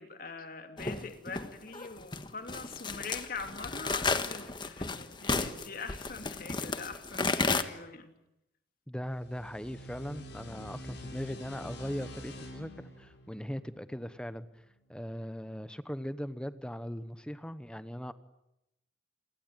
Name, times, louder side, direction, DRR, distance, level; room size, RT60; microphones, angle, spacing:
voice 1, 0.0-8.1, left 4 dB, 50° left, 6 dB, 3.0 m, -43 dB
sound 1, 0.8-7.6, left 3 dB, 25° left, 1.5 m, -33 dB
voice 2, 8.9-14.5 14.9-18.1, equal, 5° left, 13 dB, 1.0 m, -39 dB
sound 2, 9.1-14.4, equal, 70° left, 7.6 m, -46 dB
28.5 x 22.5 x 9.1 m, 0.86 s
head